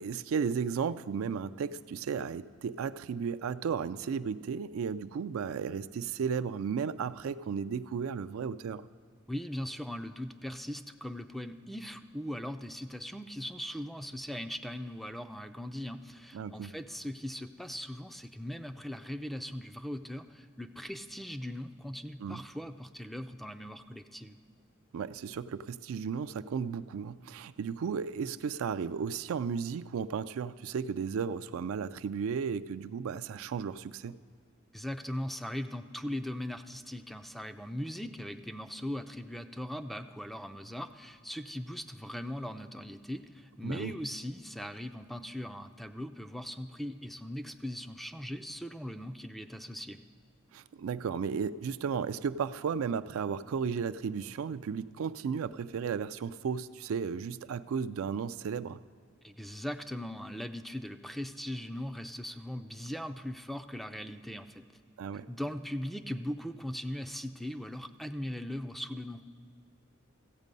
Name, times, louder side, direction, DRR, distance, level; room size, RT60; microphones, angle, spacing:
voice 1, 0.0-8.9 16.3-16.7 22.2-22.4 24.9-34.2 43.6-43.9 50.5-58.8 65.0-65.3, right 6 dB, 75° right, 14 dB, 0.3 m, -34 dB
voice 2, 9.3-24.4 34.7-50.0 59.2-64.6 65.3-69.2, equal, ahead, 9 dB, 0.3 m, -39 dB
14.5 x 8.2 x 5.3 m, 2.1 s
head